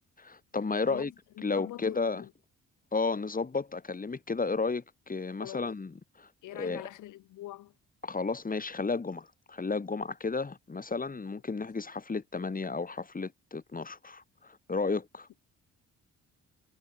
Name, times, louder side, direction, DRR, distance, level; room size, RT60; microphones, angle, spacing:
voice 1, 0.2-1.1 1.4-2.2 2.9-6.8 8.0-15.3, left 4 dB, 30° left, 5.9 m, -33 dB
voice 2, 1.4-2.3 5.4-5.7 6.4-7.7, left 15 dB, 85° left, 7.2 m, -44 dB
cardioid pair, 90°, 30 cm